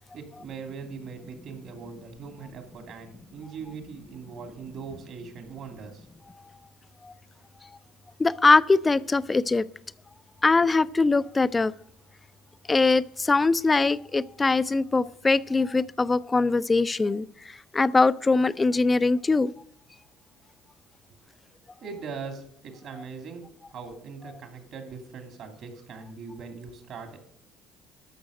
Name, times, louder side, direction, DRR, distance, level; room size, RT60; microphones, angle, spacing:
voice 1, 0.1-6.1 21.8-27.2, right 5 dB, 60° right, 5 dB, 2.7 m, -41 dB
voice 2, 8.2-9.6 10.4-11.7 12.7-19.5, left 3 dB, 25° left, 17 dB, 0.5 m, -22 dB
12.5 x 6.2 x 6.5 m, 0.70 s
hypercardioid pair, 65°, 0 cm